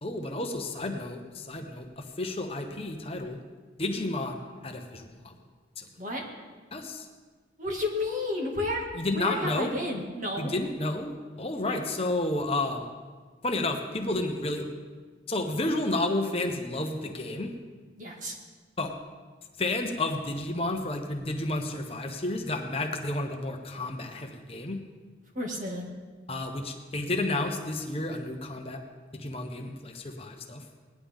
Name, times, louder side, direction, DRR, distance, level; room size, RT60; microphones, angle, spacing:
voice 1, 0.0-3.4 3.8-5.3 5.8-5.9 6.7-7.1 8.9-9.7 10.4-11.1 11.4-12.8 13.4-14.7 15.3-17.5 18.8-18.9 19.6-24.8 26.3-28.8 29.1-30.6, left 2 dB, 30° left, 4 dB, 1.0 m, -31 dB
voice 2, 7.6-8.9 9.1-10.5 11.6-11.8 18.0-18.3 25.3-25.9, left 1 dB, 40° right, 0 dB, 2.0 m, -31 dB
18.5 x 11.0 x 3.6 m, 1.4 s
head